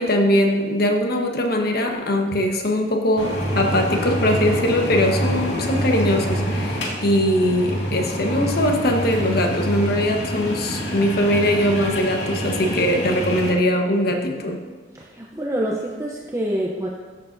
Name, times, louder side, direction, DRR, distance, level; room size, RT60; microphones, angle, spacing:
voice 1, 0.0-14.6, left 1 dB, 60° left, 3 dB, 1.1 m, -21 dB
sound 1, 3.2-13.5, equal, 90° left, 2.1 m, -26 dB
voice 2, 14.9-16.9, right 1 dB, 15° right, -2 dB, 0.7 m, -26 dB
14.0 x 6.9 x 2.6 m, 1.4 s
head